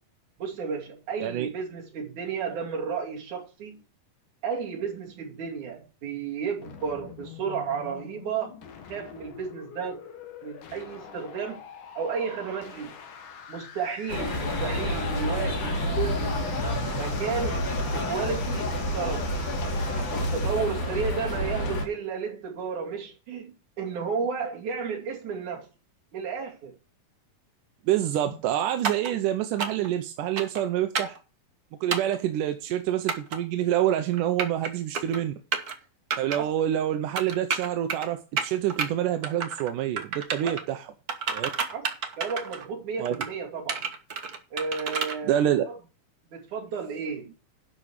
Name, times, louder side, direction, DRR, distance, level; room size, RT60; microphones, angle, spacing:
voice 1, 0.4-3.8 4.4-8.5 8.9-10.0 10.4-11.6 12.0-12.9 13.5-16.4 17.0-19.3 20.1-25.7 26.1-26.7 36.3-36.5 40.4-40.6 41.7-41.9 42.2-43.9 44.5-45.4 45.7-45.8 46.3-47.3, right 6 dB, 70° right, 4.0 m, -33 dB
sound 1, 6.6-20.6, left 7 dB, 90° left, 3.2 m, -46 dB
sound 2, 14.1-21.9, left 1 dB, 40° left, 2.5 m, -28 dB
voice 2, 27.9-31.2 31.8-35.3 36.2-40.9 41.3-41.5 43.0-43.2 45.2-45.6, right 11 dB, 85° right, 2.4 m, -27 dB
sound 3, 28.8-29.1 29.6-29.9 30.4-30.6 30.9-31.2 31.9-32.2 33.1-33.4 34.1-34.7 34.9-35.2 35.5-35.7 36.1-36.4 37.2-38.1 38.4-38.9 39.2-39.7 40.0-40.6 41.1-42.7 43.0-43.3 43.7-45.2, right 5 dB, 50° right, 1.1 m, -30 dB
11.5 x 5.1 x 6.5 m
omnidirectional pair, 3.7 m